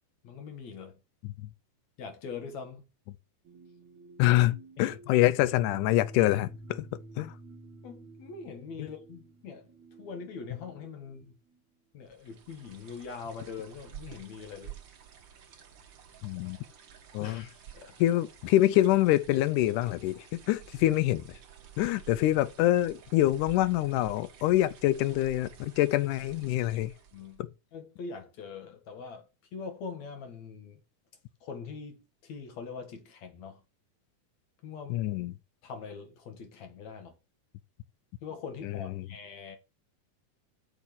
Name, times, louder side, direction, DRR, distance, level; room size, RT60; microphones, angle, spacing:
voice 1, 0.2-1.0 2.0-2.8 4.8-5.3 7.8-9.7 10.0-11.4 11.9-14.7 17.2-18.0 27.1-27.4 27.7-30.8 31.4-33.6 34.6-35.1 35.6-37.1 38.2-39.6, left 5 dB, 65° left, 2.8 m, -43 dB
sound 1, 3.4-11.6, right 2 dB, 70° right, 2.2 m, -50 dB
voice 2, 4.2-6.9 7.2-7.3 8.8-8.9 16.2-16.6 17.1-17.4 18.0-21.4 21.8-26.9 27.4-27.5 34.9-35.4 38.6-39.1, left 15 dB, 85° left, 2.1 m, -26 dB
sound 2, 12.1-27.5, right 9 dB, 50° right, 1.5 m, -51 dB
6.4 x 6.3 x 6.1 m
omnidirectional pair, 3.6 m